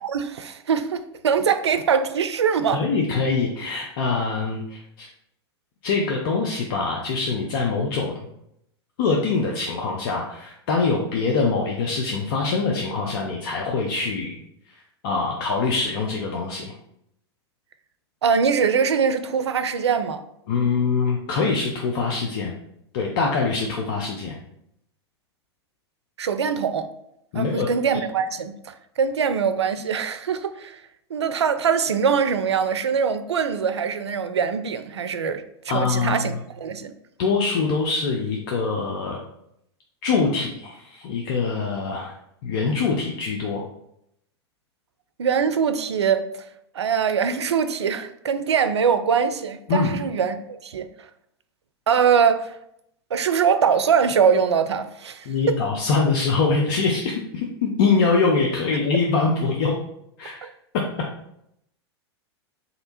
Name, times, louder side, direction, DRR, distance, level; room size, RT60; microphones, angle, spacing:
voice 1, 0.0-2.9 18.2-20.2 26.2-26.9 27.3-30.8 31.1-35.4 35.7-36.9 45.2-46.2 46.7-50.9 51.9-52.5 53.1-55.6 60.4-60.5, right 6 dB, 80° right, 0.4 m, -22 dB
voice 2, 2.7-5.1 5.8-8.1 9.0-14.4 15.0-16.6 20.5-22.5 22.9-24.4 27.3-27.7 35.7-36.2 37.2-39.2 40.0-42.1 42.4-43.6 49.7-50.0 55.3-59.7 60.2-60.3, left 4 dB, 55° left, 0.6 m, -23 dB
3.3 x 2.8 x 4.1 m
figure-of-eight pair, 95°, 14 cm